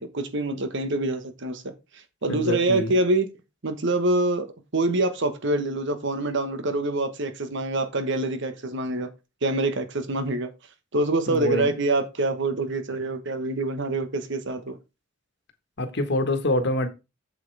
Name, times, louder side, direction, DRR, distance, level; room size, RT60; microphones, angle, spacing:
voice 1, 0.0-1.7 2.2-3.3 3.6-9.1 9.4-10.5 10.9-14.8, right 2 dB, 65° right, 1.3 m, -25 dB
voice 2, 2.3-2.9 11.3-11.7 15.8-16.9, left 1 dB, 60° left, 1.4 m, -25 dB
7.8 x 7.6 x 3.4 m
head